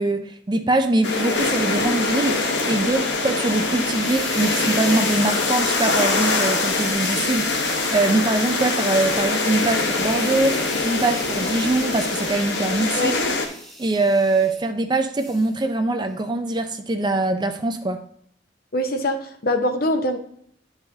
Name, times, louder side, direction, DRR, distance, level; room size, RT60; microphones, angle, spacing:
voice 1, 0.0-13.1 13.8-18.0, right 2 dB, 25° right, 7 dB, 0.4 m, -23 dB
sound 1, 1.0-13.5, left 3 dB, 75° left, 1.0 m, -23 dB
Hiss, 2.9-14.6 15.2-15.5, equal, ahead, 1.1 m, -38 dB
voice 2, 18.7-20.2, left 1 dB, 50° left, 6 dB, 0.8 m, -23 dB
10.5 x 4.8 x 2.7 m, 0.68 s
head